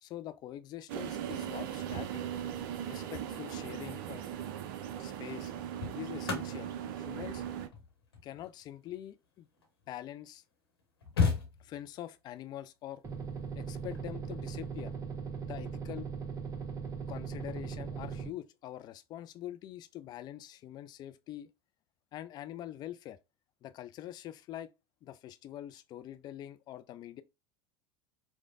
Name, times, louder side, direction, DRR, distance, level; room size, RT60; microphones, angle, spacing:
voice 1, 0.0-2.2 2.9-4.3 5.0-5.5 6.0-6.7 7.0-7.4 8.2-9.5 9.9-10.4 11.6-13.0 13.6-14.9 15.4-16.1 17.1-21.5 22.1-23.2 23.6-24.7 25.0-27.2, left 12 dB, 30° left, 0.4 m, -44 dB
sound 1, 0.9-7.7, right 10 dB, 55° right, 0.5 m, -39 dB
sound 2, 4.2-4.5 5.3-9.9 10.5-10.6 10.8-12.1 13.7-14.0, left 5 dB, 70° left, 1.1 m, -36 dB
sound 3, 13.0-18.3, right 6 dB, 25° right, 0.9 m, -39 dB
4.8 x 2.1 x 2.5 m
figure-of-eight pair, 80°, 13 cm